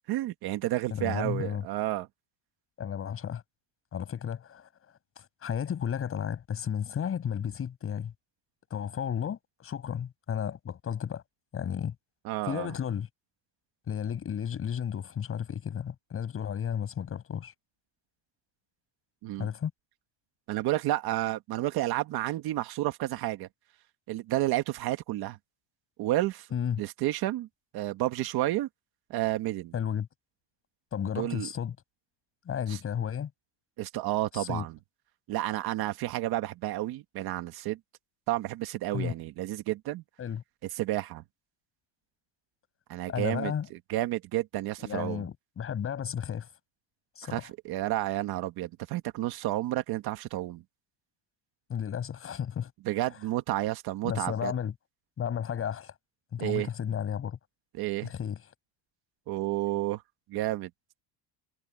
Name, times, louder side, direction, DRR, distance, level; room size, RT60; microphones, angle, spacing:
voice 1, 0.1-2.1 12.3-12.7 19.2-19.5 20.5-23.5 24.1-25.4 26.0-26.5 26.8-27.5 27.7-28.7 29.1-29.7 31.2-31.5 32.7-32.8 33.8-34.7 35.3-37.8 38.3-40.0 40.8-41.2 42.9-45.3 47.3-50.6 52.9-54.5 56.4-56.7 57.8-58.1 59.3-60.0 60.3-60.7, right 15 dB, 50° right, 1.9 m, -31 dB
voice 2, 0.9-1.6 2.8-3.4 3.9-4.7 5.2-8.1 8.7-11.2 11.5-11.9 12.4-13.1 13.9-17.5 19.4-19.7 26.5-26.8 29.7-30.1 30.9-31.8 32.4-33.3 34.3-34.6 38.9-39.1 40.2-40.4 43.1-43.7 44.8-46.5 47.2-47.5 51.7-52.7 53.1-53.2 54.0-54.7 55.2-55.9 56.3-57.4 58.0-58.4, left 8 dB, 25° left, 7.8 m, -33 dB
cardioid pair, 170°, 48 cm